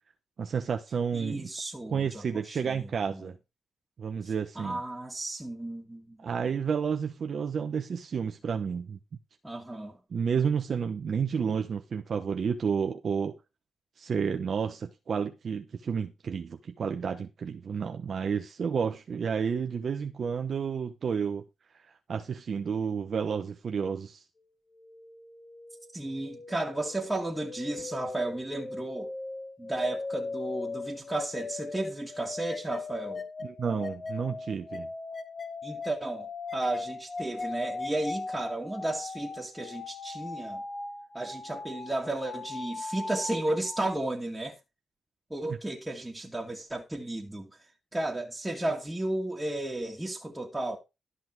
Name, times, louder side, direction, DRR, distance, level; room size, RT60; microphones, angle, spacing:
voice 1, 0.4-1.5 1.9-3.3 4.0-4.8 6.2-9.0 10.1-13.4 14.0-21.4 22.1-24.2 33.4-34.9 45.5-45.6, right 6 dB, 60° right, 1.0 m, -31 dB
voice 2, 1.1-3.3 4.2-6.2 9.4-10.0 25.9-29.1 29.6-33.2 35.6-40.6 41.1-44.5 45.3-47.5 47.9-50.8, right 2 dB, 15° right, 2.4 m, -34 dB
sound 1, 24.8-43.9, left 3 dB, 45° left, 1.7 m, -39 dB
12.5 x 5.8 x 4.8 m
supercardioid pair, 55°, 0 cm